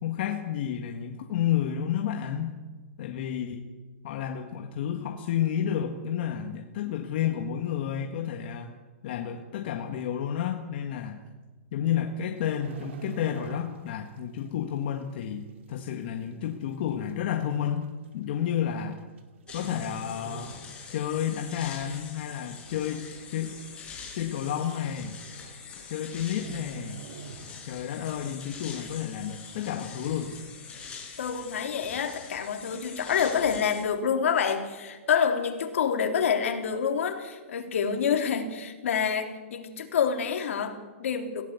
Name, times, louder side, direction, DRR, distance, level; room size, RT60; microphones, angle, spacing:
voice 1, 0.0-2.6 3.0-3.7 4.0-8.7 9.0-11.2 11.7-19.0 19.5-20.6 20.9-23.6 24.1-25.2 25.9-27.0 27.6-30.3, left 9 dB, 45° left, 4 dB, 1.8 m, -31 dB
sound 1, 12.4-14.1 14.4-14.7 15.2-15.3 16.2-16.3 16.5-16.6 17.5-17.7 18.8-19.2 19.5-21.0 21.4-21.6 22.1-22.6 23.0-23.1 23.3-23.4 23.8-23.9 24.9-25.0 25.2-25.5 25.8-25.9 26.3-28.0 28.3-28.4, right 6 dB, 60° right, 2.3 m, -43 dB
sound 2, 19.5-33.8, left 5 dB, 15° left, 5.0 m, -44 dB
voice 2, 31.2-41.4, left 7 dB, 75° left, 5 dB, 3.5 m, -27 dB
21.5 x 16.5 x 8.4 m, 1.3 s
hypercardioid pair, 165°, 7 cm